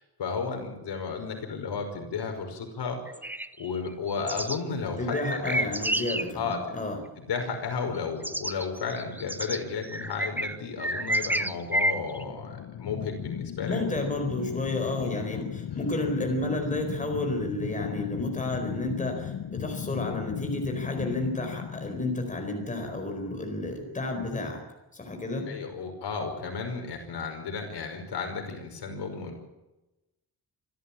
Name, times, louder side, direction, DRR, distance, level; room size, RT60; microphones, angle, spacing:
voice 1, 0.2-3.0 3.6-5.7 6.3-6.6 7.2-13.8 15.0-15.1 25.5-29.4, left 5 dB, 75° left, 4 dB, 5.5 m, -33 dB
sound 1, 3.1-4.6 5.1-6.3 7.9-8.0 8.2-12.2, right 1 dB, 5° right, 0.7 m, -29 dB
voice 2, 5.0-7.0 13.6-24.6 24.9-25.5, left 2 dB, 20° left, 3 dB, 4.5 m, -31 dB
sound 2, 12.1-23.1, left 10 dB, 60° left, 0.9 m, -37 dB
27.0 x 13.5 x 8.8 m, 1.0 s
wide cardioid pair, 180°, 41 cm